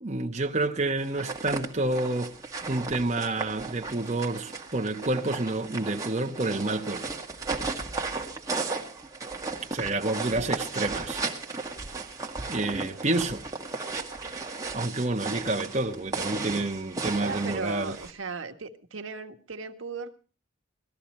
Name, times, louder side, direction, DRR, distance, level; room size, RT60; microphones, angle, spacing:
voice 1, 0.0-2.4 2.6-7.2 9.7-11.2 12.5-13.4 14.7-18.0, right 2 dB, 35° right, 1.0 m, -29 dB
sound 1, 1.0-18.1, right 3 dB, 15° right, 1.8 m, -35 dB
voice 2, 17.2-20.1, right 4 dB, 80° right, 1.4 m, -37 dB
19.0 x 13.5 x 4.3 m
head